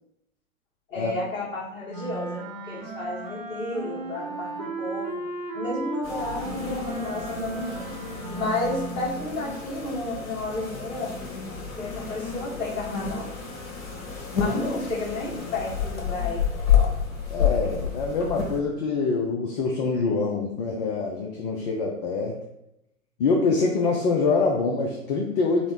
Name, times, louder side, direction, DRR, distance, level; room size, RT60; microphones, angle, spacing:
voice 1, 0.9-5.2 5.5-7.9 8.3-11.1 11.7-13.3 14.4-16.4, left 2 dB, 25° left, -7 dB, 1.4 m, -32 dB
Wind instrument woodwind instrument, 1.9-9.3, right 3 dB, 15° right, 0.3 m, -35 dB
sound 1, 6.0-18.6, left 7 dB, 65° left, 1.0 m, -29 dB
voice 2, 17.3-22.3 23.2-25.7, left 4 dB, 40° left, 0 dB, 0.5 m, -25 dB
3.8 x 2.0 x 3.2 m, 0.83 s
figure-of-eight pair, 105°, 43 cm